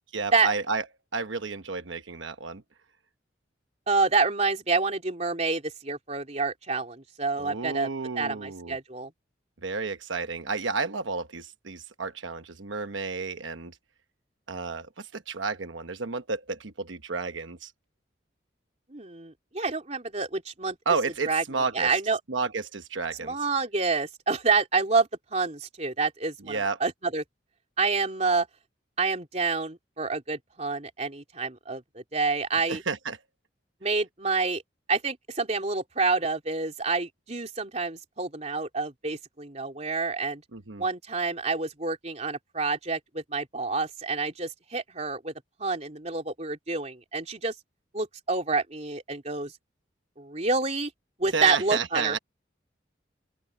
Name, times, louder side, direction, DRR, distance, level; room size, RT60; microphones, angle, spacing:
voice 1, 0.1-0.8 1.1-2.6 7.4-8.8 9.6-13.8 14.5-17.7 20.8-21.9 22.3-23.5 26.4-26.8 32.6-33.2 40.5-40.8 51.2-52.2, right 4 dB, 90° right, 1.1 m, -31 dB
voice 2, 3.9-7.9 8.2-9.1 18.9-20.8 21.2-21.4 21.7-22.2 23.2-27.2 27.8-28.5 29.0-32.8 33.8-34.6 34.9-40.4 40.8-45.3 45.6-47.5 47.9-49.5 50.2-50.9 51.2-52.2, right 4 dB, 35° right, 3.4 m, -28 dB
open air
head